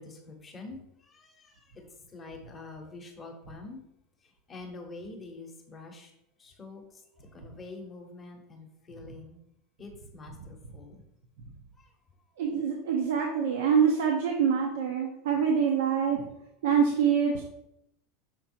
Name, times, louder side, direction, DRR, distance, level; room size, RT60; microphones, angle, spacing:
voice 1, 0.0-1.8 2.1-3.8 4.5-6.1 6.4-6.8 7.3-9.4 9.8-11.0 11.8-11.9, left 3 dB, 15° left, 2 dB, 0.9 m, -46 dB
voice 2, 12.4-16.3 16.6-17.4, right 7 dB, 75° right, 2 dB, 0.8 m, -25 dB
6.1 x 3.9 x 4.4 m, 0.80 s
supercardioid pair, 175°, 0 cm